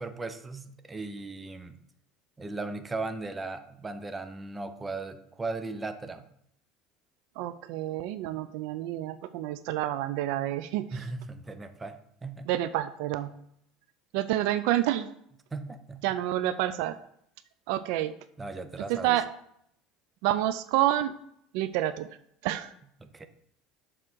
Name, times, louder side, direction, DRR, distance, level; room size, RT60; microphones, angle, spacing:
voice 1, 0.0-1.8 2.4-6.2 10.9-11.9 12.2-12.5 15.5-16.0 18.4-19.2 23.0-23.3, right 3 dB, 15° right, 9 dB, 0.6 m, -37 dB
voice 2, 7.4-10.9 12.5-13.3 14.1-15.1 16.0-17.0 17.7-18.1 18.9-19.3 20.2-21.1 21.5-22.1 22.4-22.7, right 13 dB, 75° right, 13 dB, 0.4 m, -28 dB
6.8 x 3.7 x 6.2 m, 0.71 s
supercardioid pair, 120°, 0 cm